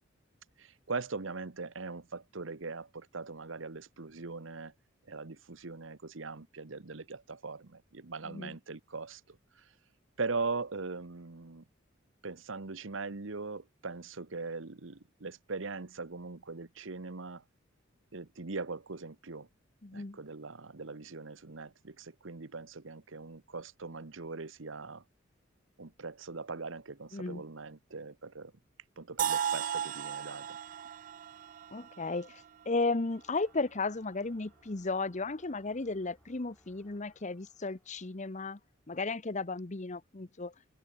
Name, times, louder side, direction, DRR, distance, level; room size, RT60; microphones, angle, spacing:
voice 1, 0.6-4.7 5.1-9.6 10.2-11.6 12.2-17.4 18.1-19.5 19.9-25.0 25.8-28.5 29.0-30.6, right 4 dB, 75° right, 1.1 m, -40 dB
voice 2, 8.2-8.6 19.8-20.2 27.1-27.4 31.7-38.6 38.9-40.5, left 3 dB, 35° left, 1.0 m, -34 dB
sound 1, 29.2-33.1, right 9 dB, 40° right, 0.3 m, -36 dB
sound 2, 33.0-39.1, left 1 dB, 10° left, 4.2 m, -68 dB
head